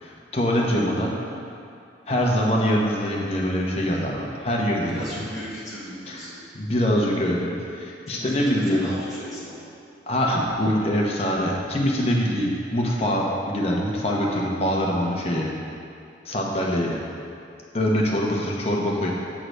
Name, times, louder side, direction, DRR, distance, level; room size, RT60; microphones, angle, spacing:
voice 1, 0.0-1.1 2.1-5.2 6.1-6.2 6.5-8.9 10.1-15.5 16.2-17.0 17.7-19.1, equal, 35° left, -3 dB, 1.0 m, -24 dB
voice 2, 0.8-1.2 4.8-6.4 8.1-9.7, equal, ahead, -11 dB, 1.4 m, -37 dB
7.8 x 3.8 x 6.5 m, 2.5 s
head